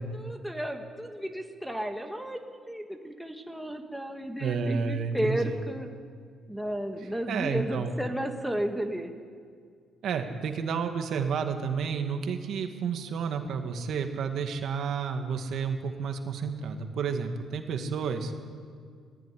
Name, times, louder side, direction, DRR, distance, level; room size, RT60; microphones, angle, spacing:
voice 1, 0.0-5.9 6.5-9.1, equal, ahead, 3 dB, 1.7 m, -33 dB
voice 2, 4.4-5.6 7.3-7.9 10.0-18.3, right 6 dB, 60° right, 6 dB, 2.0 m, -31 dB
19.0 x 16.0 x 10.0 m, 2.1 s
cardioid pair, 115°, 0 cm